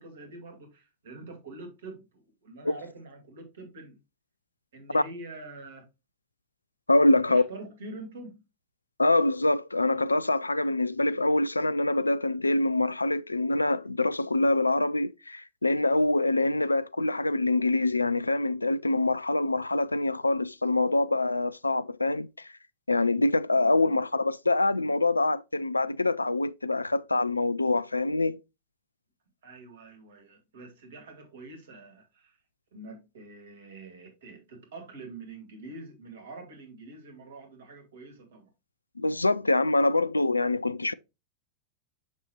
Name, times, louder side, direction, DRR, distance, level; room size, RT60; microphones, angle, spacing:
voice 1, 0.0-4.0 4.7-5.9 7.1-8.4 23.7-24.0 29.4-32.4 32.7-38.5, right 2 dB, 60° right, 2.2 m, -45 dB
voice 2, 6.9-7.4 9.0-22.5 22.9-28.4 39.0-40.9, left 2 dB, 80° left, 0.3 m, -25 dB
6.5 x 5.9 x 2.9 m
figure-of-eight pair, 90°, 0 cm